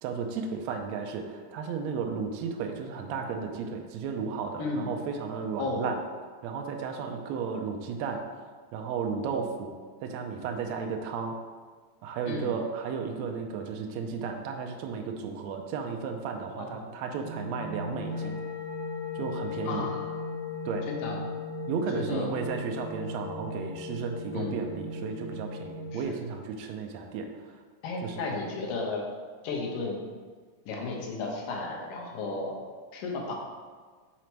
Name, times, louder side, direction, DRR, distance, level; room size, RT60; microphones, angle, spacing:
voice 1, 0.0-6.0 6.4-8.2 8.7-9.7 10.0-11.4 12.0-18.4 19.1-19.9 20.6-20.9 21.7-27.6 28.0-28.2, right 5 dB, 85° right, 3 dB, 1.5 m, -34 dB
voice 2, 4.6-4.9 5.6-6.0 12.3-12.5 16.6-16.9 19.6-20.1 20.9-21.2 21.9-22.3 24.3-24.6 25.9-26.2 27.8-29.0 29.4-30.0 30.7-32.5 32.9-33.3, left 3 dB, 85° left, 0 dB, 2.6 m, -34 dB
sound 1, 17.1-26.0, left 3 dB, 50° left, 0.9 m, -37 dB
6.3 x 4.1 x 4.5 m, 1.5 s
omnidirectional pair, 3.7 m